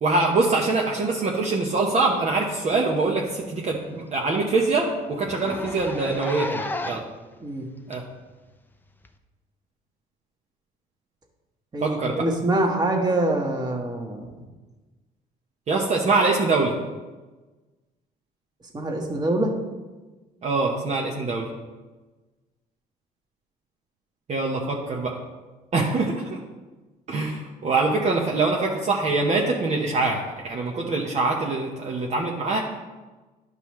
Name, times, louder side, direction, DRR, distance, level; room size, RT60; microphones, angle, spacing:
voice 1, 0.0-7.0 7.9-8.0 11.8-12.2 15.7-16.7 20.4-21.5 24.3-25.1 25.7-26.2 27.1-32.6, right 3 dB, 40° right, -1 dB, 1.0 m, -24 dB
Zipper (clothing), 2.7-2.8 3.1-3.2 3.6-3.7 4.1-4.2 4.4-4.6 5.2-7.2 7.9-8.0 9.0-9.1, left 2 dB, 10° left, 0.5 m, -33 dB
voice 2, 11.7-14.3 18.7-19.5, right 1 dB, 25° right, 2 dB, 1.4 m, -25 dB
11.5 x 5.4 x 3.2 m, 1.2 s
cardioid pair, 110°, 17 cm